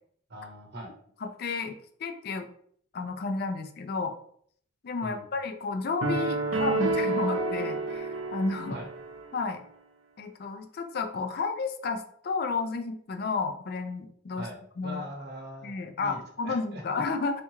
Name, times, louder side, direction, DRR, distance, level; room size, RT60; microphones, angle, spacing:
voice 1, 0.3-0.9 5.0-5.3 8.7-8.9 14.4-14.5 14.8-15.7 16.0-16.2 16.4-16.8, equal, 55° right, 1 dB, 0.8 m, -40 dB
voice 2, 1.2-2.5 2.9-4.1 4.8-8.8 9.3-9.6 10.2-14.5 14.8-15.1 15.6-17.4, left 4 dB, 50° left, 6 dB, 0.4 m, -32 dB
sound 1, 6.0-9.3, right 3 dB, 85° right, 0.6 m, -29 dB
3.5 x 2.9 x 2.8 m, 0.62 s
head